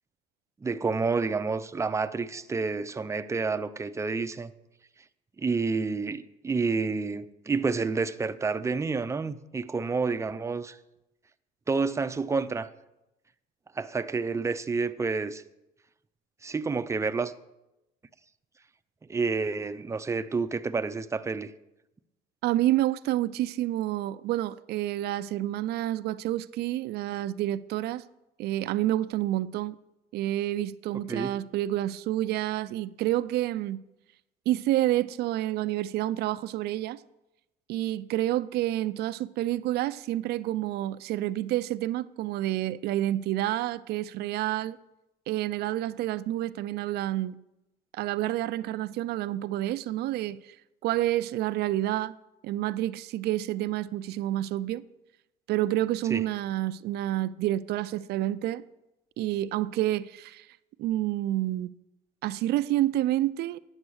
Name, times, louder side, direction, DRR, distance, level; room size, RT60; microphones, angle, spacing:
voice 1, 0.6-4.5 5.4-10.8 11.7-12.7 13.7-15.4 16.4-17.3 19.1-21.5 31.1-31.3 56.1-56.2, right 4 dB, 15° right, 0.5 m, -29 dB
voice 2, 22.4-28.0 28.4-29.8 30.1-33.8 34.5-37.0 37.7-44.8 45.3-47.4 47.9-50.6 50.8-52.1 52.4-54.8 55.5-58.6 59.2-60.5 60.8-61.7 62.2-63.6, right 14 dB, 70° right, 0.4 m, -29 dB
9.7 x 7.2 x 6.2 m
cardioid pair, 110°, 17 cm